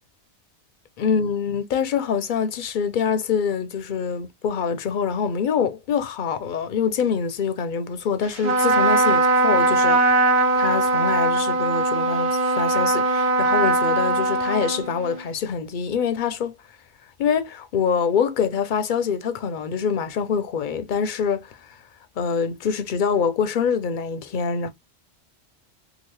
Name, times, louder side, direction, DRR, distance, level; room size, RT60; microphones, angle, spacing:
voice 1, 1.0-10.0 10.6-16.5 17.2-21.8 22.2-24.7, left 6 dB, 60° left, 0.6 m, -25 dB
Trumpet, 8.4-15.2, right 2 dB, 80° right, 1.3 m, -20 dB
2.8 x 2.6 x 3.0 m
omnidirectional pair, 1.1 m